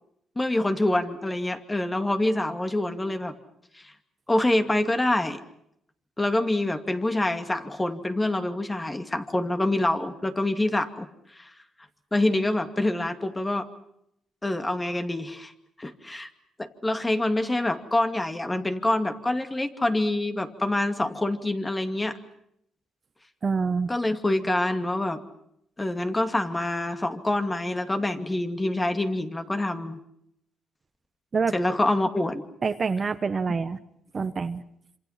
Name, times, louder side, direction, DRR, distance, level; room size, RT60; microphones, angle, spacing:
voice 1, 0.4-3.4 3.7-3.9 4.3-5.4 6.2-11.5 12.1-13.7 14.4-15.5 15.8-16.3 16.6-22.2 23.9-25.2 25.8-30.0 31.5-32.4, left 1 dB, 15° left, 7 dB, 2.4 m, -26 dB
voice 2, 23.4-23.9 31.3-31.5 32.6-33.8 34.1-34.6, right 5 dB, 35° right, 10 dB, 1.1 m, -26 dB
27.0 x 26.0 x 5.8 m, 0.75 s
cardioid pair, 90°, 0 cm